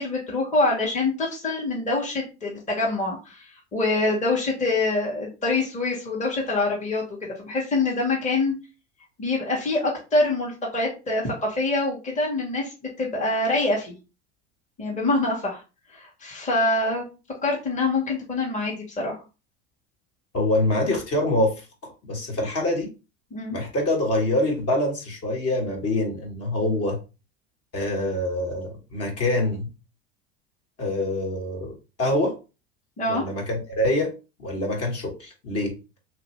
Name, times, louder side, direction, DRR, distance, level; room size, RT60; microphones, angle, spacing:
voice 1, 0.0-7.0 7.4-8.5 9.2-13.9 14.8-15.6 15.9-17.0 17.4-19.2 23.3-23.6 33.0-33.2, left 2 dB, 20° left, -3 dB, 1.2 m, -25 dB
voice 2, 20.3-21.6 22.0-22.9 23.5-27.0 27.7-29.7 30.8-32.3 33.1-34.1 34.4-35.8, left 1 dB, 45° left, 1 dB, 1.4 m, -25 dB
3.0 x 2.5 x 3.1 m, 0.31 s
hypercardioid pair, 90°, 34 cm